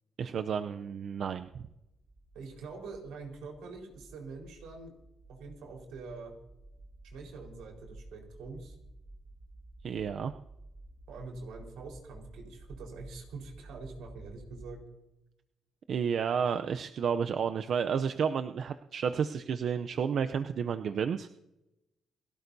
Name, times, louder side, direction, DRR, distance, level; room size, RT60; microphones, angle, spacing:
voice 1, 0.2-1.6 9.8-10.3 15.9-21.3, right 7 dB, 60° right, 9 dB, 0.6 m, -31 dB
sound 1, 1.8-14.7, right 2 dB, 45° right, 1.9 m, -53 dB
voice 2, 2.3-4.9 5.3-6.3 7.0-8.8 11.1-14.8, right 4 dB, 90° right, 1 dB, 4.4 m, -45 dB
29.0 x 12.5 x 2.7 m, 0.93 s
cardioid pair, 90°, 0 cm